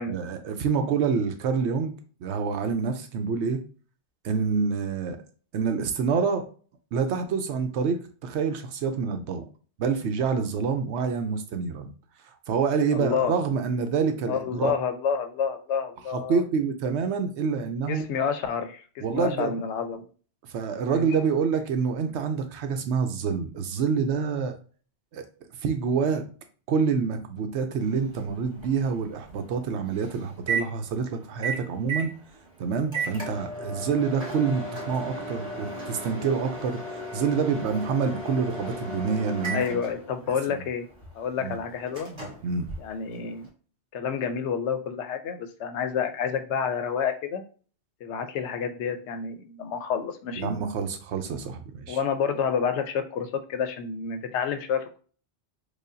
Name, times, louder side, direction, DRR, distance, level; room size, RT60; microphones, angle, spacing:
voice 1, 0.1-1.9 2.2-3.6 4.2-5.2 5.5-6.4 6.9-9.4 9.8-11.9 12.5-14.7 16.1-18.1 19.0-19.6 20.5-24.5 25.1-25.2 25.6-26.2 26.7-32.1 32.6-39.8 40.5-40.6 41.4-41.6 42.4-42.7 50.4-52.0, right 5 dB, 80° right, 7 dB, 0.9 m, -27 dB
voice 2, 12.9-13.4 14.3-16.4 17.9-20.0 20.8-21.1 39.5-40.9 41.1-42.2 42.8-43.5 43.9-47.4 48.0-50.5 51.9-55.0, left 7 dB, 80° left, 8 dB, 0.9 m, -29 dB
Microwave oven, 27.8-43.5, right 2 dB, 25° right, 1.1 m, -36 dB
4.9 x 2.2 x 2.6 m, 0.40 s
omnidirectional pair, 1.2 m